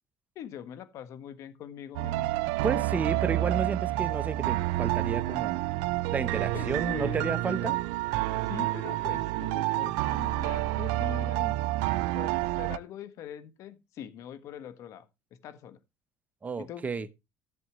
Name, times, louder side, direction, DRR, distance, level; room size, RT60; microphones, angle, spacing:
voice 1, 0.3-2.4 6.5-7.8 8.4-11.6 12.1-15.1 15.4-15.8 16.6-16.9, left 9 dB, 65° left, 1.5 m, -42 dB
sound 1, 1.9-12.8, right 17 dB, 90° right, 0.5 m, -29 dB
voice 2, 2.6-5.6 6.1-7.8 16.4-17.1, right 5 dB, 25° right, 1.0 m, -32 dB
14.5 x 7.4 x 3.1 m
supercardioid pair, 95°, 6 cm